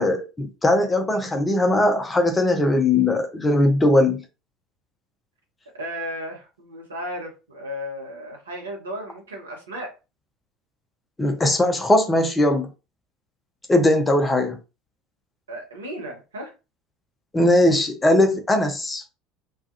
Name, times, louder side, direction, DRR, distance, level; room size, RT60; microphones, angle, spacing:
voice 1, 0.0-4.2 11.2-12.7 13.7-14.6 17.3-19.0, left 1 dB, 15° left, 0.6 m, -19 dB
voice 2, 5.7-9.9 15.5-16.5, equal, 75° right, 0.8 m, -34 dB
2.3 x 2.3 x 2.5 m
figure-of-eight pair, 65°, 0 cm